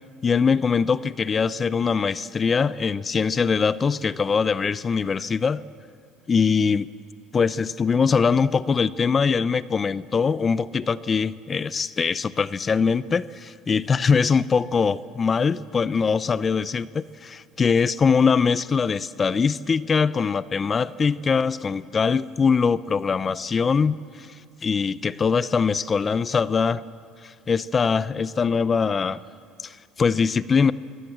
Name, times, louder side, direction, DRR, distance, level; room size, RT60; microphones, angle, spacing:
voice 1, 0.2-5.6 6.3-6.9 7.3-24.3 24.6-26.8 27.2-29.2 29.6-30.7, left 5 dB, 30° left, 17 dB, 0.6 m, -22 dB
25.0 x 18.0 x 7.5 m, 2.3 s
supercardioid pair, 95°, 0 cm